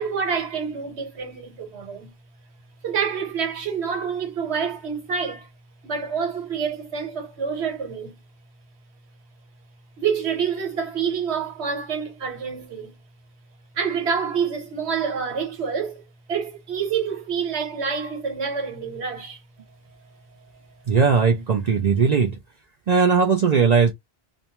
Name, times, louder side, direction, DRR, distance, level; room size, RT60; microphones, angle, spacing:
voice 1, 0.0-2.1 2.8-5.5 5.8-8.1 10.0-13.0 13.7-16.0 16.3-19.4, right 6 dB, 90° right, 1.3 m, -27 dB
voice 2, 20.9-22.4 22.9-23.9, right 5 dB, 55° right, 0.5 m, -18 dB
2.5 x 2.1 x 2.8 m
omnidirectional pair, 1.1 m